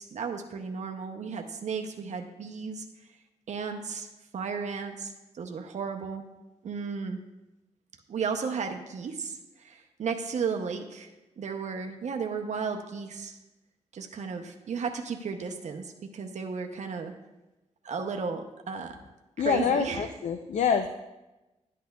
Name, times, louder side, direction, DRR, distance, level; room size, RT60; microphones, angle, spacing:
voice 1, 0.0-2.9 3.5-4.1 4.3-6.2 6.6-7.2 8.1-11.1 11.4-13.4 13.9-17.1 17.8-19.0 19.4-20.1, right 5 dB, 70° right, 4 dB, 0.6 m, -34 dB
voice 2, 19.4-20.9, left 6 dB, 75° left, 7 dB, 0.4 m, -26 dB
11.5 x 8.5 x 2.3 m, 1.0 s
wide cardioid pair, 95°, 12 cm